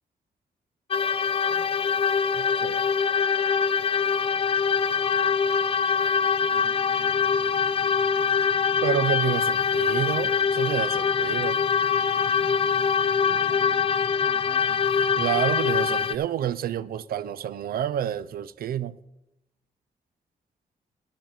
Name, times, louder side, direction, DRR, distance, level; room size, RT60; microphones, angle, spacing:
sound 1, 0.9-16.2, left 6 dB, 40° left, 0.3 m, -23 dB
voice 1, 1.4-2.0 6.0-6.1 6.4-8.8 13.2-14.8, right 1 dB, 50° right, 3.4 m, -52 dB
voice 2, 2.4-2.9 8.8-11.6 15.2-19.0, right 10 dB, 85° right, 0.4 m, -29 dB
10.5 x 7.3 x 5.4 m
wide cardioid pair, 110°, 15 cm